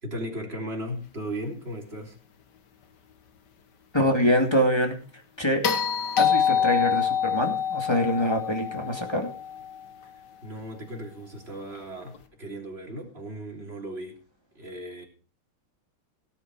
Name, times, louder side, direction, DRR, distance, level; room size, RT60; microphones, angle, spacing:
voice 1, 0.0-2.2 10.1-14.2 14.6-15.0, equal, 30° right, 0 dB, 3.8 m, -36 dB
voice 2, 3.9-5.0 5.4-5.7 6.2-9.3, equal, 15° left, 3 dB, 2.3 m, -24 dB
sound 1, 5.6-9.9 12.1-12.2, left 8 dB, 60° left, 1.8 m, -26 dB
18.0 x 8.7 x 4.8 m, 0.38 s
omnidirectional pair, 2.2 m